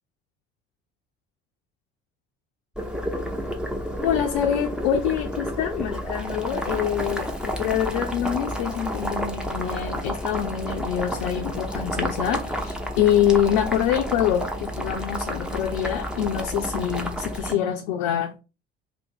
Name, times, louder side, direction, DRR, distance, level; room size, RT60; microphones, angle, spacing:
Boiling, 2.7-17.5, equal, 5° right, 0.6 m, -30 dB
voice 1, 4.0-18.4, left 10 dB, 60° left, 0.5 m, -25 dB
2.7 x 2.6 x 4.3 m
figure-of-eight pair, 55°, 32 cm